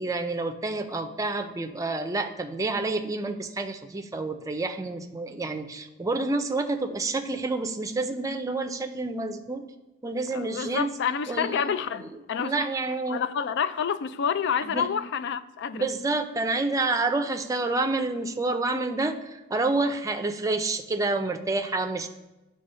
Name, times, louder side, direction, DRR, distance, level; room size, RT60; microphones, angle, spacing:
voice 1, 0.0-9.7 10.0-10.9 11.3-11.7 12.0-13.2 14.6-14.9 15.7-22.1, right 3 dB, 15° right, 0.5 m, -28 dB
voice 2, 10.3-12.7 13.1-15.9, left 7 dB, 60° left, 0.4 m, -28 dB
9.2 x 3.4 x 5.5 m
head